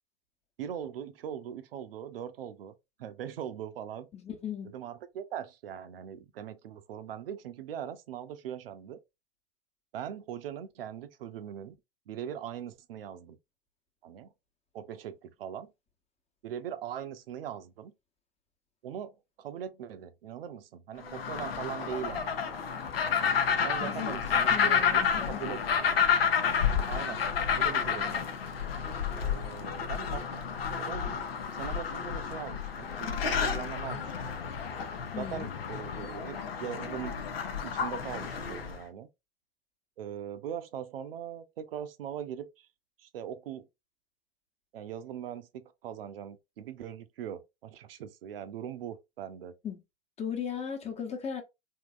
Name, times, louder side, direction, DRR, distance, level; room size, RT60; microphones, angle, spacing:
voice 1, 0.6-4.1 4.7-9.0 9.9-11.7 12.1-13.4 14.0-14.3 14.7-15.7 16.4-17.9 18.8-22.6 23.6-25.9 26.9-27.2 27.5-28.3 29.1-34.3 35.2-37.2 37.6-39.1 40.0-42.7 43.0-43.7 44.7-49.5, right 9 dB, 75° right, 0.7 m, -41 dB
voice 2, 4.1-4.7 23.8-23.9 24.5-25.6 35.1-35.5 49.6-49.8 50.2-51.4, left 7 dB, 20° left, 0.9 m, -37 dB
sound 1, 21.0-38.8, left 7 dB, 85° left, 0.7 m, -30 dB
3.6 x 2.7 x 2.5 m
hypercardioid pair, 100°, 29 cm